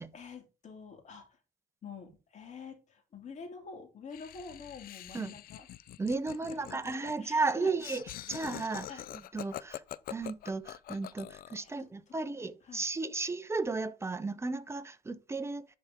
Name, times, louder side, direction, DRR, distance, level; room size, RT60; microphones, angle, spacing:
voice 1, 0.1-1.4 1.8-5.7 6.5-7.7 8.9-9.0 11.6-11.7 12.4-12.8, left 5 dB, 45° left, 2.6 m, -47 dB
Laughter, 4.1-11.7, left 13 dB, 60° left, 0.5 m, -45 dB
voice 2, 6.0-9.0 9.3-9.8 10.1-15.7, right 3 dB, 15° right, 0.7 m, -34 dB
10.5 x 4.3 x 3.6 m
cardioid pair, 110°, 17 cm